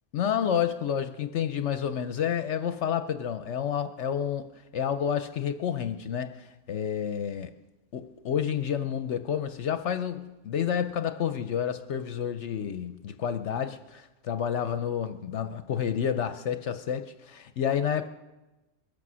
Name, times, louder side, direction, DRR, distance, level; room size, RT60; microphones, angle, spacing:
voice 1, 0.1-7.5 7.9-18.1, left 8 dB, 65° left, 0.9 m, -30 dB
22.0 x 8.4 x 6.2 m
omnidirectional pair, 1.4 m